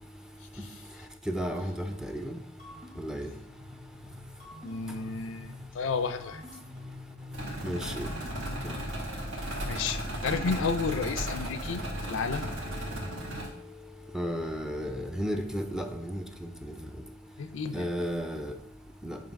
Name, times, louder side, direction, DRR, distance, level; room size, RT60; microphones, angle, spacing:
voice 1, 1.3-2.4 3.0-3.3 7.6-8.1 8.6-8.7 14.1-16.7 17.7-18.5 19.0-19.2, equal, 5° right, 5 dB, 0.4 m, -33 dB
sound 1, 1.8-8.9, left 2 dB, 30° right, 1.6 m, -47 dB
voice 2, 4.6-6.4 9.6-12.5 17.4-17.9, left 5 dB, 70° left, 11 dB, 0.4 m, -32 dB
sound 2, 7.3-13.5, right 1 dB, 80° right, 1.6 m, -35 dB
7.4 x 2.8 x 5.2 m, 0.77 s
head